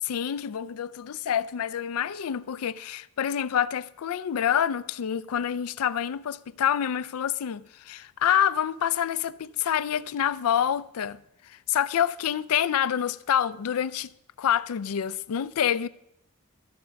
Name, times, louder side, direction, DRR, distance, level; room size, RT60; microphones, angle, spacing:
voice 1, 0.0-14.1 14.4-15.9, left 9 dB, 90° left, 0.4 m, -27 dB
14.0 x 6.8 x 5.2 m
head